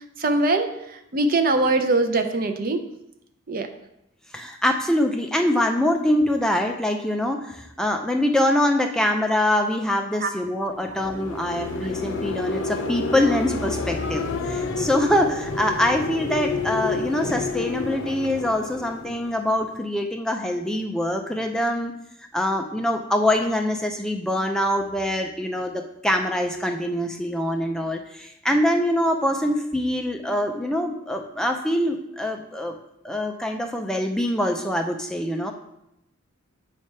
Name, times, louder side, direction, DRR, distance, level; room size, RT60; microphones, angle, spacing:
voice 1, 0.2-0.7 1.1-2.8 3.5-3.7 10.2-10.3, right 2 dB, 45° right, 7 dB, 0.6 m, -21 dB
voice 2, 4.3-21.9 22.3-32.8 33.0-35.5, left 1 dB, 5° left, 3 dB, 0.4 m, -24 dB
sound 1, 10.7-19.8, left 4 dB, 80° left, 0.7 m, -29 dB
8.2 x 3.3 x 5.4 m, 0.84 s
head